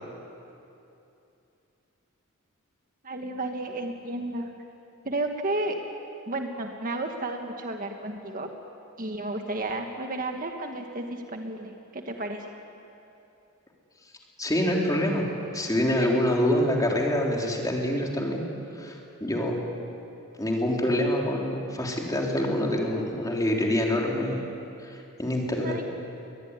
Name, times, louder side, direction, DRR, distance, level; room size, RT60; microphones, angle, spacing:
voice 1, 3.0-4.5 5.0-5.8 6.3-8.5 9.0-12.5 25.6-25.9, right 2 dB, 40° right, 4 dB, 1.6 m, -32 dB
voice 2, 14.4-15.2 15.5-18.4 18.8-19.6 20.4-24.4 24.8-25.7, left 1 dB, 15° left, -1 dB, 3.7 m, -26 dB
23.0 x 22.0 x 9.8 m, 2.8 s
head